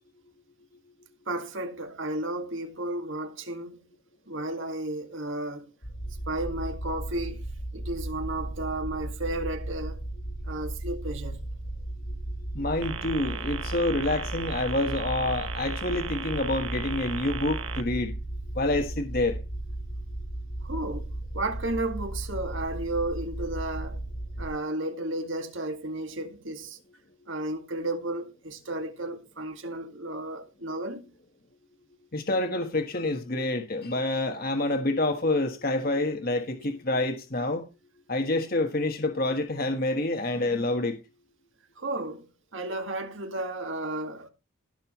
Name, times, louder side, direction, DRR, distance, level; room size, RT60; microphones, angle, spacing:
voice 1, 1.3-3.8 4.3-5.7 6.3-7.4 7.7-10.0 10.5-11.5 20.6-24.0 24.4-26.8 27.3-31.0 41.8-44.3, right 2 dB, 70° right, 1.9 m, -33 dB
sound 1, 5.8-24.5, right 1 dB, 90° left, 5.1 m, -35 dB
voice 2, 12.5-18.1 18.5-19.4 32.1-37.6 38.1-40.9, left 2 dB, 45° left, 1.3 m, -27 dB
sound 2, 12.8-17.8, right 6 dB, 85° right, 1.3 m, -37 dB
18.0 x 6.6 x 3.0 m
head